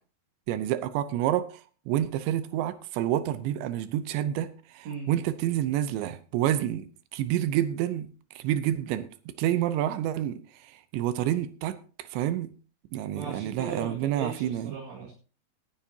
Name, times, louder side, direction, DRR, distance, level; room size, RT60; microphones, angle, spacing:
voice 1, 0.5-1.6 1.9-6.9 7.1-8.1 8.4-12.5 12.9-14.8, right 12 dB, 85° right, 3.1 m, -28 dB
voice 2, 13.1-15.1, right 4 dB, 50° right, 2.9 m, -38 dB
19.0 x 9.7 x 2.9 m
omnidirectional pair, 5.1 m